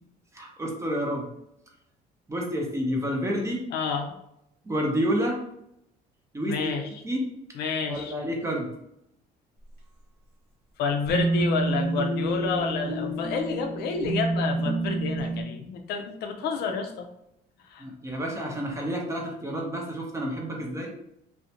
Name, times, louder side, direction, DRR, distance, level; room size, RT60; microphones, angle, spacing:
voice 1, 0.3-1.3 2.3-3.6 4.7-5.4 6.3-6.7 7.0-7.3 7.9-8.7 17.8-20.9, equal, 15° right, -1 dB, 0.6 m, -29 dB
voice 2, 3.7-4.1 6.4-7.0 7.5-8.1 10.8-17.1 17.7-17.8, left 5 dB, 75° left, 4 dB, 0.4 m, -29 dB
sound 1, 11.1-15.4, right 2 dB, 65° right, 0.9 m, -28 dB
2.4 x 2.2 x 2.8 m, 0.79 s
cardioid pair, 110°, 17 cm